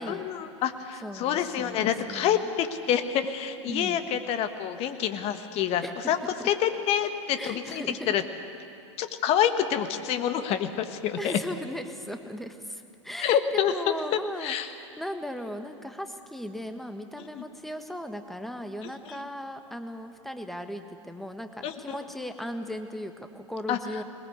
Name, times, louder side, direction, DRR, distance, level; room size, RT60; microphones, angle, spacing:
voice 1, 0.1-6.2 6.4-8.2 9.0-11.4 13.2-13.9 14.4-14.7 17.3-17.4 21.6-21.9 23.7-23.8, left 9 dB, 40° left, 9 dB, 1.5 m, -27 dB
voice 2, 1.0-2.5 3.7-4.0 5.8-6.5 7.3-8.1 11.2-24.0, equal, ahead, 7 dB, 1.4 m, -37 dB
21.0 x 20.0 x 8.2 m, 2.5 s
figure-of-eight pair, 95°, 16 cm